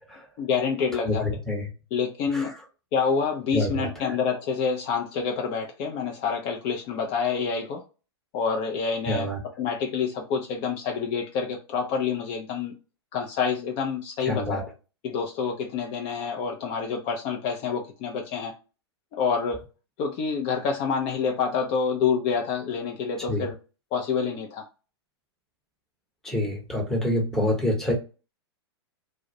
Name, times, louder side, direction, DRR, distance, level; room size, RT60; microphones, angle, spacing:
voice 1, 0.4-1.2 1.9-2.5 2.9-7.8 8.3-9.3 9.6-12.7 13.1-14.7 15.0-18.5 19.1-19.6 20.0-23.5 23.9-24.6, left 6 dB, 35° left, 2 dB, 0.5 m, -27 dB
voice 2, 0.9-1.7 2.3-2.6 3.5-4.2 9.1-9.4 14.3-14.6 23.3-23.5 26.2-27.9, left 1 dB, 5° left, -1 dB, 0.9 m, -27 dB
2.3 x 2.0 x 2.7 m, 0.32 s
hypercardioid pair, 110°, 14 cm